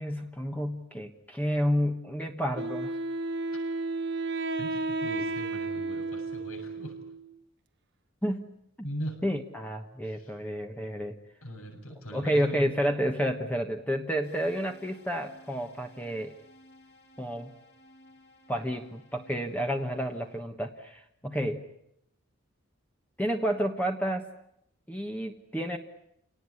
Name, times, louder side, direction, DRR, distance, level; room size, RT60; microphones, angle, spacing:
voice 1, 0.0-3.0 8.2-8.5 9.2-11.2 12.1-16.3 17.2-17.5 18.5-21.6 23.2-24.3 24.9-25.8, equal, 5° left, 3 dB, 1.3 m, -30 dB
Wind instrument woodwind instrument, 2.5-7.3, right 3 dB, 50° right, 1.1 m, -33 dB
voice 2, 4.6-7.0 8.8-9.2 10.0-10.3 11.4-12.8, equal, 75° left, 3 dB, 7.6 m, -40 dB
sound 1, 14.2-20.4, left 1 dB, 45° left, 3.7 m, -56 dB
29.5 x 18.5 x 9.8 m, 0.77 s
head